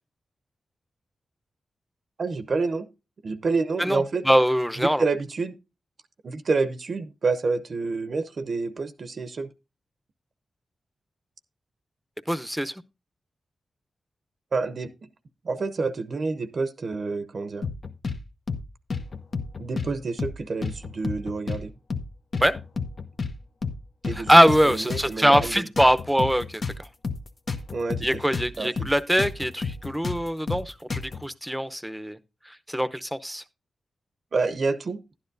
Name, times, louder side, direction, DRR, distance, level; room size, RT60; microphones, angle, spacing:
voice 1, 2.2-2.9 3.2-4.2 5.0-5.5 6.2-9.5 14.5-14.9 15.4-17.6 19.6-21.7 24.0-24.3 24.6-25.7 27.7-28.1 28.6-28.9 34.3-35.0, right 4 dB, 60° right, 0.7 m, -28 dB
voice 2, 3.8-5.0 12.3-12.7 22.4-22.6 24.1-26.6 28.0-32.2 32.5-33.4, equal, 5° right, 0.7 m, -22 dB
sound 1, 17.6-18.2 18.5-18.6 18.9-19.9 20.2-20.3 20.6-21.6 21.9-22.1 22.3-23.3 23.6-23.8 24.0-25.5 25.8-28.5 28.8-28.9 29.2-31.2, left 4 dB, 60° left, 1.0 m, -31 dB
11.0 x 9.9 x 2.6 m
cardioid pair, 55°, 0 cm